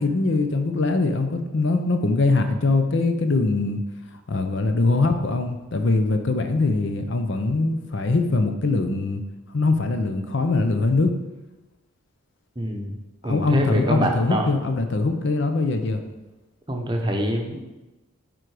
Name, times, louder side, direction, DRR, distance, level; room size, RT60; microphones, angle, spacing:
voice 1, 0.0-3.8 4.3-9.2 9.5-11.1 13.2-16.0, left 3 dB, 55° left, 7 dB, 0.6 m, -22 dB
voice 2, 12.6-13.0 13.2-14.5 16.7-17.6, right 1 dB, 20° right, 2 dB, 0.8 m, -25 dB
9.1 x 3.9 x 4.8 m, 1.1 s
head